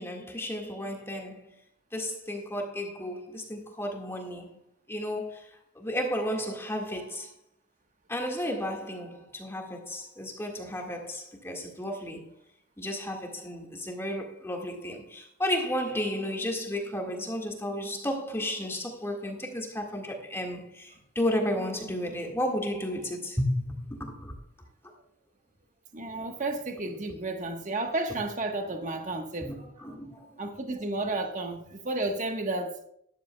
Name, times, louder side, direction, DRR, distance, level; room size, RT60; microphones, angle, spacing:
voice 1, 0.0-1.6 1.9-4.6 4.9-5.5 5.8-7.3 8.1-12.2 12.8-24.3 29.4-29.6 29.8-30.3, equal, 10° left, 1.9 m, -33 dB
voice 2, 25.9-29.7 30.4-32.7, right 2 dB, 40° right, 1.3 m, -32 dB
13.0 x 11.5 x 2.3 m
head